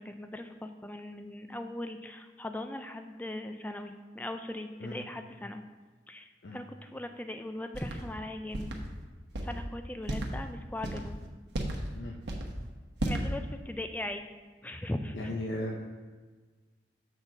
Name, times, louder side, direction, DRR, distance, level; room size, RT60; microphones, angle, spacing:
voice 1, 0.0-5.6 6.1-8.7 9.4-11.2 13.0-14.3 14.6-15.3, left 1 dB, 10° left, 7 dB, 0.4 m, -39 dB
sound 1, 7.7-8.0 8.5-8.8 9.3-9.6 10.0-10.3 10.8-11.1 11.5-11.9 12.2-12.5 13.0-13.3, right 1 dB, 70° right, 1.0 m, -33 dB
voice 2, 15.1-15.8, left 1 dB, 90° left, -1 dB, 0.7 m, -36 dB
7.0 x 4.1 x 5.8 m, 1.4 s
head